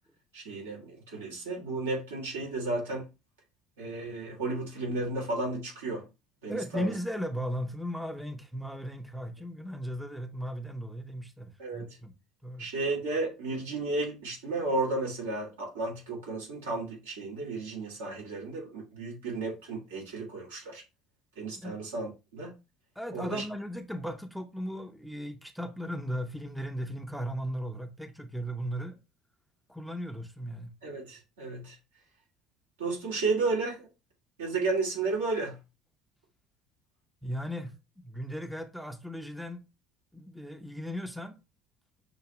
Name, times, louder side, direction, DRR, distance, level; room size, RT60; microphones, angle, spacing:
voice 1, 0.3-3.1 3.8-6.0 6.4-6.9 11.6-11.9 12.6-20.8 21.4-22.5 23.1-23.4 30.8-31.8 32.8-33.9 34.4-35.6, right 3 dB, 90° right, 2.1 m, -33 dB
voice 2, 6.5-12.1 12.4-12.7 21.5-21.8 23.0-29.0 29.7-30.7 37.2-37.7 38.0-39.7 40.1-41.4, equal, ahead, 0.8 m, -36 dB
6.0 x 2.9 x 3.0 m
hypercardioid pair, 70°, 0 cm